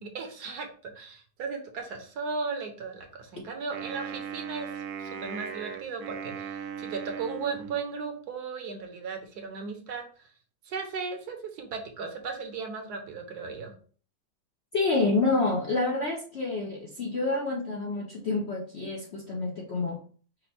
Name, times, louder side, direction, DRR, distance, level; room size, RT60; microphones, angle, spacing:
voice 1, 0.0-4.7 5.0-10.3 10.6-13.7, right 4 dB, 65° right, 3 dB, 1.2 m, -36 dB
Wind instrument woodwind instrument, 3.7-8.1, right 7 dB, 85° right, 1.3 m, -38 dB
voice 2, 14.7-20.0, left 3 dB, 60° left, -2 dB, 0.7 m, -28 dB
5.2 x 2.1 x 4.2 m, 0.43 s
omnidirectional pair, 1.9 m